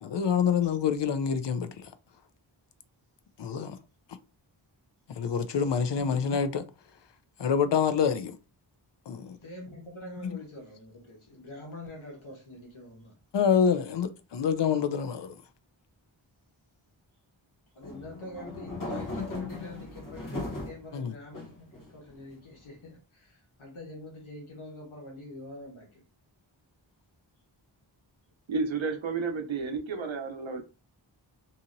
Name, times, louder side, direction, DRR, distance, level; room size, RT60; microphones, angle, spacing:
voice 1, 0.0-1.7 3.4-3.8 5.2-6.6 7.4-8.4 9.1-9.4 13.3-15.3 20.9-21.1, left 7 dB, 65° left, 0.5 m, -26 dB
voice 2, 5.8-6.1 9.4-13.1 13.8-14.0 17.7-26.0, left 1 dB, 85° left, 1.2 m, -45 dB
sound 1, 17.8-20.8 21.3-22.2, left 2 dB, 45° left, 1.0 m, -37 dB
voice 3, 28.5-30.6, right 4 dB, 70° right, 0.7 m, -31 dB
2.8 x 2.7 x 2.5 m
wide cardioid pair, 40°, 47 cm